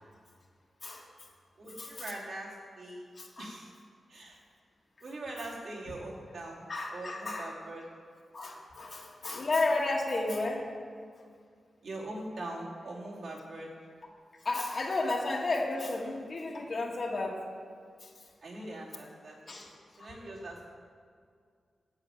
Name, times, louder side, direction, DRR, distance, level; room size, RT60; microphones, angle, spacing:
voice 1, 1.6-3.0 3.4-3.7 4.1-4.4 5.0-6.6 6.9-7.8 11.8-13.7 18.4-19.7 20.0-20.6, right 1 dB, 60° right, -5 dB, 2.8 m, -42 dB
voice 2, 3.2-3.5 6.7-7.5 8.3-10.7 14.5-17.4 18.0-18.1 19.5-19.7 20.0-20.1, left 2 dB, 40° left, -1 dB, 1.7 m, -32 dB
8.9 x 7.2 x 9.0 m, 2.1 s
wide cardioid pair, 160°, 0 cm